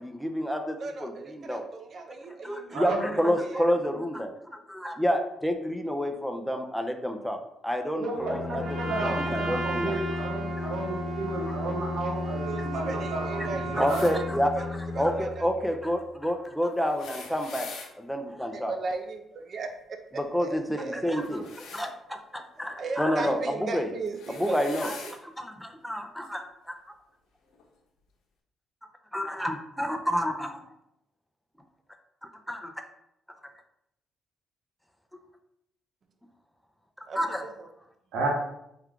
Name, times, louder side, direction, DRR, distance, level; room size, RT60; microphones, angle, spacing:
voice 1, 0.0-1.6 2.4-7.4 7.6-8.6 9.0-10.3 12.6-12.9 13.7-17.7 18.0-18.7 20.2-21.5 21.7-23.4 23.7-23.9 24.4-24.9 25.4-26.8 29.1-30.5 32.5-32.7 37.2-37.4, equal, ahead, 4 dB, 0.5 m, -29 dB
voice 2, 0.8-3.7 12.4-14.2 14.5-15.7 17.0-17.3 18.5-19.7 20.1-21.2 22.8-25.2 37.1-37.7, right 3 dB, 55° right, 5 dB, 0.6 m, -37 dB
voice 3, 2.7-3.1 8.0-14.1 38.1-38.3, right 2 dB, 85° right, -1 dB, 1.1 m, -33 dB
Bowed string instrument, 8.1-16.1, left 4 dB, 55° left, 0.3 m, -35 dB
Trumpet, 8.6-14.4, right 5 dB, 70° right, 0.9 m, -36 dB
sound 1, 13.9-14.1 16.8-17.9 21.1-21.9 23.2-23.5 24.1-25.2 26.2-26.3 27.5-27.6, left 4 dB, 85° left, 0.7 m, -43 dB
4.4 x 2.4 x 3.5 m, 0.80 s
cardioid pair, 90°, 0 cm